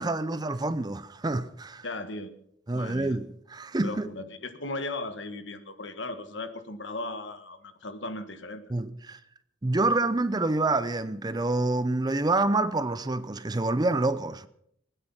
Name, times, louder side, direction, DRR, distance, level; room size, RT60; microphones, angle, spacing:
voice 1, 0.0-1.8 2.7-4.1 8.7-9.2 9.6-14.5, right 2 dB, 20° right, 0.6 m, -27 dB
voice 2, 1.8-2.3 2.7-3.2 3.8-8.6, left 2 dB, 65° left, 1.5 m, -37 dB
20.5 x 9.8 x 6.0 m
head